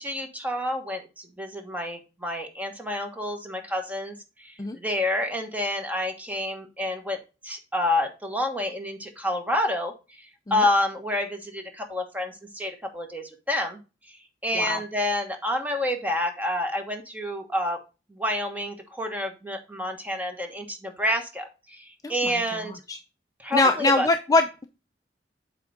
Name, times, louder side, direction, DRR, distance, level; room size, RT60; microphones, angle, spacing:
voice 1, 0.0-4.1 4.4-10.2 10.5-13.8 14.4-17.8 18.1-22.7 23.4-24.1, left 1 dB, 10° right, 4 dB, 1.2 m, -28 dB
voice 2, 23.5-24.6, left 2 dB, 20° left, 6 dB, 0.4 m, -22 dB
8.2 x 3.5 x 5.0 m, 0.30 s
head